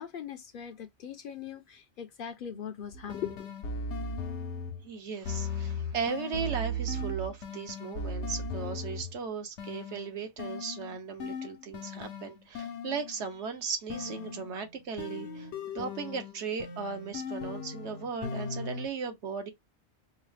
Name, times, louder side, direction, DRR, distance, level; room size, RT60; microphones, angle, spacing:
voice 1, 0.0-3.5, left 8 dB, 60° left, 0.6 m, -40 dB
sound 1, 2.9-4.9 5.2-9.2 9.6-13.3 13.9-18.9, left 2 dB, 85° left, 1.0 m, -37 dB
voice 2, 4.8-15.5 15.7-19.5, right 5 dB, 80° right, 1.2 m, -37 dB
4.6 x 2.0 x 3.2 m
omnidirectional pair, 1.2 m